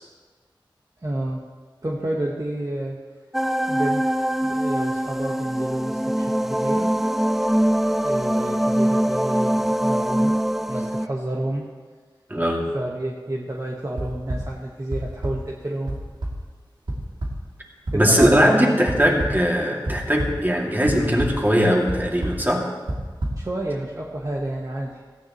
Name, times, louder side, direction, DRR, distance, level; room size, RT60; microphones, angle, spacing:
voice 1, 1.0-1.4 1.8-3.0 3.7-4.1 4.4-6.9 8.0-10.3 10.7-11.7 12.7-16.0 17.9-18.8 23.4-25.0, right 1 dB, 40° right, -2 dB, 1.5 m, -29 dB
sound 1, 3.3-11.1, equal, 5° right, 0.4 m, -23 dB
voice 2, 12.3-12.7 17.9-22.7, equal, 20° right, -1 dB, 2.6 m, -20 dB
sound 2, 14.0-14.4 14.9-15.3 15.9-16.3 16.9-17.0 17.2-17.3 17.9-18.3 18.9-19.3 19.9-20.4 20.9-21.3 21.9-22.0 22.2-22.4 22.9-23.3, right 1 dB, 65° right, 2.9 m, -26 dB
17.0 x 13.5 x 3.2 m, 1.4 s
wide cardioid pair, 45°, 9 cm